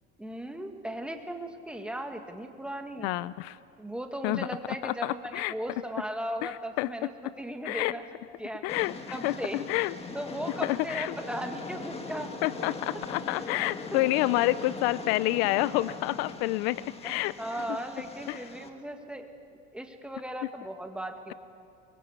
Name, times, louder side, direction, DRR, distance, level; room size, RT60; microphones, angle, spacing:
voice 1, 0.2-3.1 3.8-8.0 8.4-8.7 9.1-9.6 10.1-12.7 13.9-14.0 17.0-21.3, right 1 dB, 5° right, 4 dB, 1.9 m, -37 dB
voice 2, 3.0-3.6 4.2-4.5 4.8-5.5 6.4-6.9 7.6-7.9 8.6-9.9 10.6-11.1 12.4-17.3 18.3-18.4, left 18 dB, 65° left, 18 dB, 0.6 m, -28 dB
Train, 8.7-18.7, left 3 dB, 15° left, 1.8 m, -40 dB
23.5 x 23.0 x 8.2 m, 2.6 s
supercardioid pair, 135°, 34 cm